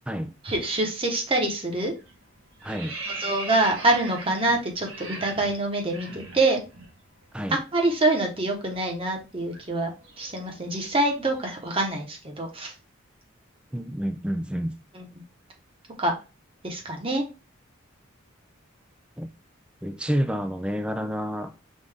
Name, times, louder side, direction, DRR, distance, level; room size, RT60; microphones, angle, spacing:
voice 1, 0.4-1.9 3.2-6.6 7.7-12.7 14.9-15.0 16.0-16.1 16.6-17.2, right 2 dB, 25° right, 1.0 m, -25 dB
sound 1, 1.4-1.7 2.0-6.9 7.2-7.4 7.7-11.7, right 3 dB, 80° right, 1.5 m, -40 dB
voice 2, 2.6-3.0 7.3-7.6 13.7-14.8 19.2-19.3 19.8-21.5, equal, 5° right, 0.3 m, -29 dB
5.4 x 2.6 x 3.3 m
head